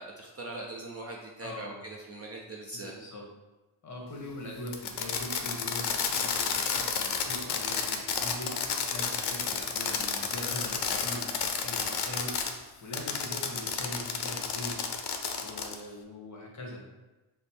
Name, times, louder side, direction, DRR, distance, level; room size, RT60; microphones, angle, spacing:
voice 1, 0.0-2.9, right 2 dB, 30° right, -1 dB, 0.5 m, -41 dB
voice 2, 1.4-1.9 2.7-3.3 3.8-14.8 15.4-16.8, left 1 dB, 35° left, -1 dB, 1.1 m, -42 dB
Fireworks, 4.7-12.5 12.9-15.8, left 6 dB, 55° left, 0.6 m, -31 dB
5.1 x 2.1 x 4.3 m, 1.1 s
cardioid pair, 120°, 50 cm